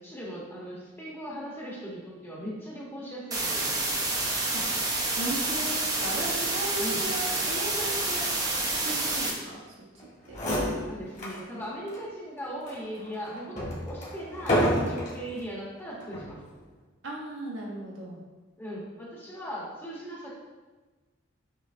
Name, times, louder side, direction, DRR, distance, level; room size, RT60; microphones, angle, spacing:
voice 1, 0.0-3.9 6.8-7.1 10.6-16.4 18.6-20.3, equal, 10° left, -5 dB, 0.9 m, -39 dB
sound 1, 3.3-9.3, right 2 dB, 20° right, 0.5 m, -28 dB
voice 2, 5.2-8.3 8.8-9.8 10.3-10.4 17.0-18.2, right 1 dB, 75° right, -3 dB, 1.1 m, -36 dB
sound 2, 10.0-10.1 10.3-11.4 11.9-12.0 12.6-15.2 16.0-16.4, equal, 35° left, 1.3 m, -29 dB
6.3 x 3.1 x 2.5 m, 1.3 s
head